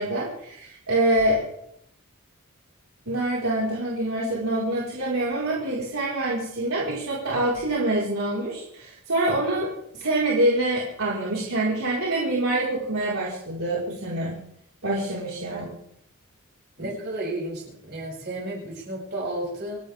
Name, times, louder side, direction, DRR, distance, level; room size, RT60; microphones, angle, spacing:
voice 1, 0.0-1.4 3.1-14.3 14.8-15.7, right 1 dB, 80° right, -6 dB, 5.1 m, -25 dB
voice 2, 16.8-19.8, right 1 dB, 50° right, -4 dB, 7.9 m, -32 dB
29.5 x 11.5 x 3.7 m, 0.73 s
head